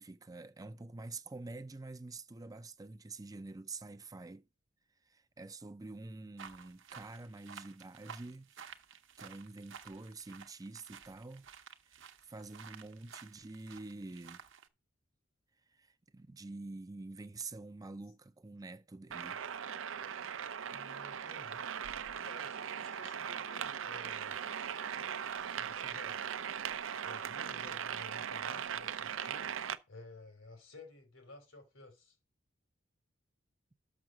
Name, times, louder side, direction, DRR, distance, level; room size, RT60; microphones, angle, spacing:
voice 1, 0.0-4.5 5.0-8.7 9.2-11.5 11.9-14.4 15.7-19.4, right 3 dB, 20° right, 0.4 m, -47 dB
sound 1, 6.4-14.7, right 7 dB, 70° right, 0.9 m, -53 dB
sound 2, 19.1-29.8, right 8 dB, 90° right, 0.5 m, -39 dB
voice 2, 20.7-21.7 22.1-24.5 25.5-26.2 27.0-29.6 29.9-32.1, left 3 dB, 90° left, 3.2 m, -54 dB
6.4 x 6.0 x 6.2 m
head